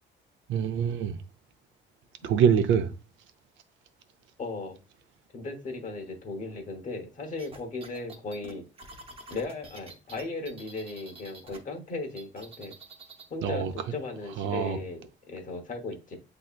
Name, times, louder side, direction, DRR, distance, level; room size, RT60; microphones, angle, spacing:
voice 1, 0.5-1.2 2.2-2.9 13.4-13.7 14.4-14.8, right 8 dB, 80° right, 0.6 m, -24 dB
voice 2, 4.4-4.8 5.3-8.7 9.3-12.7 13.3-16.2, left 3 dB, 40° left, 1.0 m, -37 dB
sound 1, 7.4-11.6 11.9-13.3, right 3 dB, 30° right, 0.8 m, -47 dB
7.5 x 2.8 x 2.4 m
cardioid pair, 140°, 20 cm